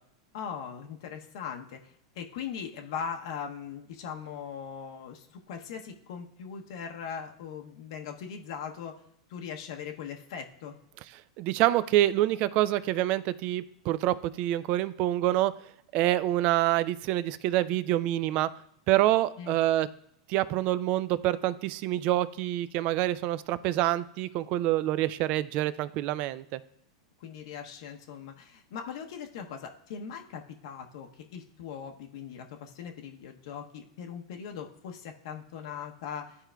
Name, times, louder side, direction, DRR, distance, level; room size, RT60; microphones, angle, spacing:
voice 1, 0.3-8.9 9.3-10.8 19.4-19.6 27.2-36.4, left 7 dB, 65° left, 3 dB, 0.7 m, -40 dB
voice 2, 11.4-15.5 15.9-18.5 18.9-19.9 20.3-26.6, right 14 dB, 50° right, 16 dB, 0.3 m, -26 dB
12.5 x 4.6 x 2.2 m, 0.71 s
hypercardioid pair, 110°, 3 cm